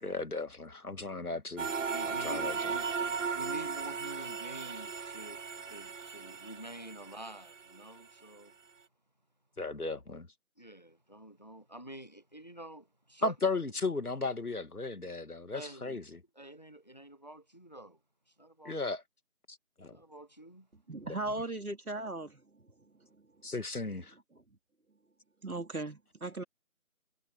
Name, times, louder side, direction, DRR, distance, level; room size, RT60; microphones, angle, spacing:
voice 1, 0.0-1.7 2.2-2.5 9.6-10.3 13.2-16.2 18.7-19.0 19.8-19.9 23.4-24.1, left 3 dB, 85° left, 2.1 m, -35 dB
voice 2, 1.0-1.4 1.9-5.4 5.7-8.5 10.6-13.3 15.5-16.1 16.3-18.0 18.3-18.8 19.9-20.7, right 1 dB, 30° left, 0.9 m, -48 dB
sound 1, 1.6-7.8, right 5 dB, 60° right, 0.6 m, -36 dB
voice 3, 20.9-22.7 23.2-23.3 24.3-24.4 25.4-26.4, right 2 dB, 75° right, 3.0 m, -38 dB
figure-of-eight pair, 165°, 43 cm